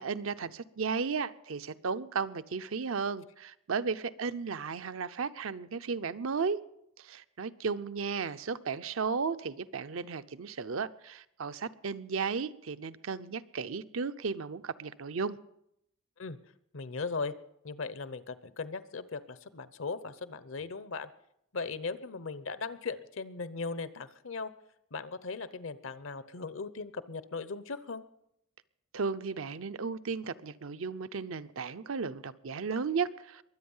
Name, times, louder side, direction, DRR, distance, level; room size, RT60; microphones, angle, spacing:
voice 1, 0.0-6.6 7.0-15.4 28.9-33.4, right 5 dB, 80° right, 0.6 m, -34 dB
voice 2, 16.7-17.3 17.6-21.1 21.5-24.5 24.9-28.0, left 4 dB, 70° left, 0.8 m, -38 dB
22.5 x 8.7 x 5.5 m
head